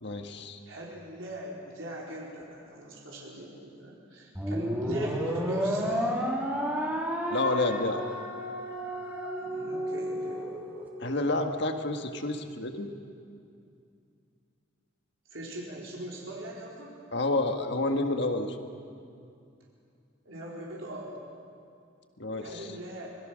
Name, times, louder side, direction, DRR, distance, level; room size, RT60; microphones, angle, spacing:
voice 1, 0.0-0.6 7.3-8.2 11.0-12.9 17.1-18.6 22.2-22.7, left 2 dB, 55° left, 5 dB, 1.7 m, -29 dB
voice 2, 0.7-6.1 9.4-10.5 15.3-16.9 20.2-21.1 22.4-23.1, equal, 75° right, -4 dB, 4.3 m, -41 dB
sound 1, 4.3-10.8, equal, 10° right, 2.9 m, -31 dB
26.0 x 21.5 x 6.4 m, 2.4 s
head